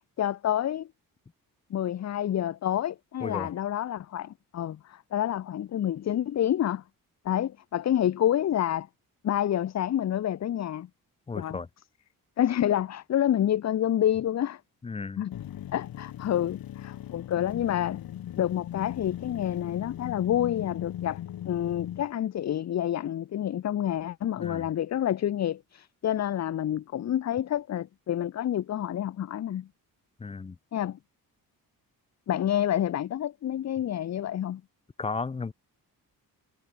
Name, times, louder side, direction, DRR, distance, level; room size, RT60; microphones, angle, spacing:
voice 1, 0.2-0.9 1.7-6.8 7.2-8.9 9.2-10.9 11.3-11.6 12.4-14.6 15.2-15.3 15.7-18.0 18.4-29.7 30.7-31.0 32.3-34.6, left 11 dB, 45° left, 0.8 m, -28 dB
voice 2, 11.3-11.7 14.8-15.2 24.4-24.7 30.2-30.6 35.0-35.5, left 4 dB, 15° left, 0.6 m, -34 dB
sound 1, 15.3-22.1, left 11 dB, 75° left, 2.5 m, -38 dB
wide cardioid pair, 165°, 36 cm